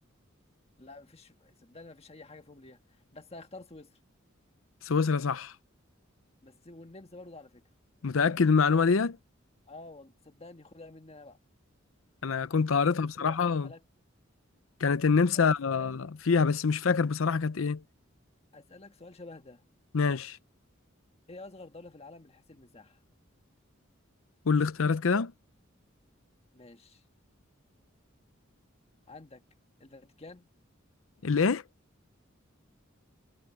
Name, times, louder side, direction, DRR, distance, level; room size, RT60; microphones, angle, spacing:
voice 1, 0.8-4.0 6.4-7.6 9.7-11.4 13.0-13.8 15.3-16.0 18.5-19.6 21.3-23.0 26.5-27.0 29.1-29.4 29.8-30.5, left 2 dB, 30° left, 1.6 m, -49 dB
voice 2, 4.8-5.5 8.0-9.2 12.2-13.7 14.8-17.8 19.9-20.4 24.5-25.3 31.2-31.6, left 5 dB, 80° left, 0.6 m, -25 dB
head